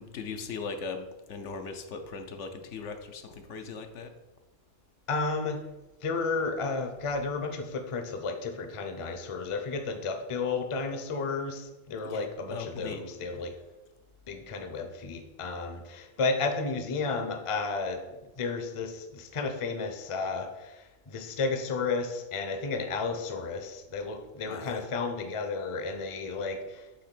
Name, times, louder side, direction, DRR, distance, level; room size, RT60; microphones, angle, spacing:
voice 1, 0.0-4.1 12.0-13.0 24.5-24.8, left 4 dB, 85° left, 6 dB, 1.0 m, -39 dB
voice 2, 5.1-5.6 6.0-13.5 14.3-26.9, left 4 dB, 35° left, 6 dB, 0.5 m, -32 dB
5.5 x 3.5 x 5.9 m, 1.1 s
omnidirectional pair, 1.2 m